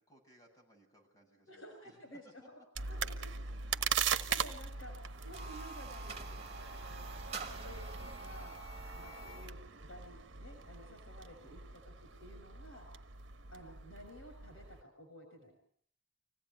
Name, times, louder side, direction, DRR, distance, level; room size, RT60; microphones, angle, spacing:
voice 1, 0.0-2.5 2.9-3.0 3.3-3.9 7.1-7.4 9.0-9.3 11.4-11.9 13.4-13.7, equal, 20° left, 1 dB, 7.7 m, -66 dB
voice 2, 1.5-2.6 2.9-3.3 4.1-7.1 7.5-8.6 8.9-9.6 9.8-12.9 13.5-15.6, equal, 85° left, 4 dB, 6.1 m, -53 dB
sound 1, 2.8-14.8, right 6 dB, 65° right, 1.4 m, -40 dB
sound 2, 5.2-9.6, right 4 dB, 30° right, 2.8 m, -47 dB
26.0 x 17.0 x 9.7 m, 0.62 s
head